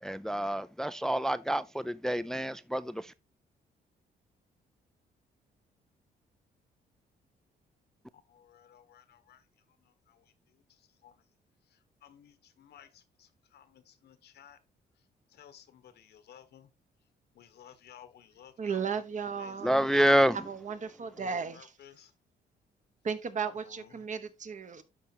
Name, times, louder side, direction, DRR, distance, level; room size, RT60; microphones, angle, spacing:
voice 1, 0.0-3.1 19.6-20.4, equal, 5° left, 0.4 m, -27 dB
voice 2, 8.1-9.4 9.8-11.2 11.7-14.6 15.3-16.7 17.3-20.2 21.2-22.1 23.6-24.1, left 9 dB, 70° left, 1.2 m, -56 dB
voice 3, 18.6-19.8 20.4-21.7 23.0-24.8, right 6 dB, 45° right, 1.2 m, -35 dB
12.0 x 4.7 x 2.9 m
cardioid pair, 85°, 17 cm